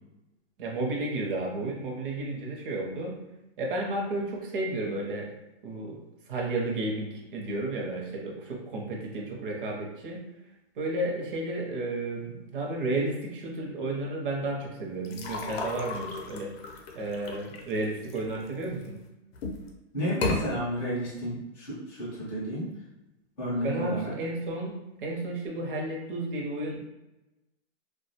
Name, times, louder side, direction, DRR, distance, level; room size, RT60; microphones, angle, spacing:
voice 1, 0.6-3.2 3.6-5.3 5.6-6.0 6.3-10.2 10.8-16.5 16.9-19.0 23.6-24.7 25.0-26.9, right 2 dB, 50° right, 0 dB, 0.7 m, -32 dB
sound 1, 15.0-18.9 19.3-19.7 20.1-20.4, left 3 dB, 60° left, 0.6 m, -34 dB
voice 2, 19.9-22.7 23.4-24.1, equal, 5° left, -13 dB, 0.4 m, -31 dB
2.3 x 2.2 x 2.8 m, 0.96 s
hypercardioid pair, 165°, 34 cm